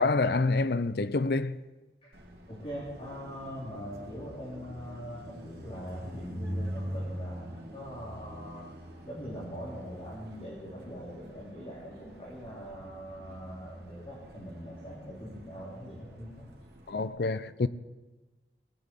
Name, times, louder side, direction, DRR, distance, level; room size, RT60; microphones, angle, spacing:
voice 1, 0.0-1.6 16.9-17.7, left 3 dB, 60° left, 0.6 m, -27 dB
Car passing by, 2.1-17.1, equal, 70° right, 2.9 m, -43 dB
voice 2, 2.5-8.7 9.0-16.4, equal, 30° left, 3.3 m, -42 dB
19.5 x 7.5 x 8.3 m
head